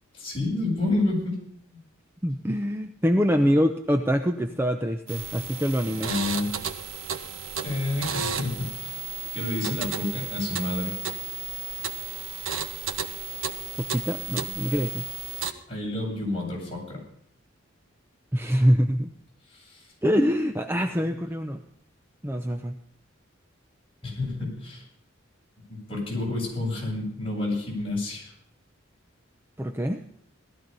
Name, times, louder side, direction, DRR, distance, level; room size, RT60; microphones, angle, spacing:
voice 1, 0.1-1.3 6.0-6.5 7.5-9.1 9.3-11.0 15.7-17.0 19.5-19.8 24.0-24.8 25.7-28.3, left 2 dB, 25° left, -3 dB, 7.9 m, -29 dB
voice 2, 2.2-6.1 13.9-15.0 18.3-19.1 20.0-21.6 22.2-22.7 29.6-30.0, equal, 10° right, 6 dB, 0.7 m, -24 dB
sound 1, 5.1-15.5, right 6 dB, 80° right, 1.1 m, -33 dB
18.0 x 13.5 x 5.5 m, 0.70 s
head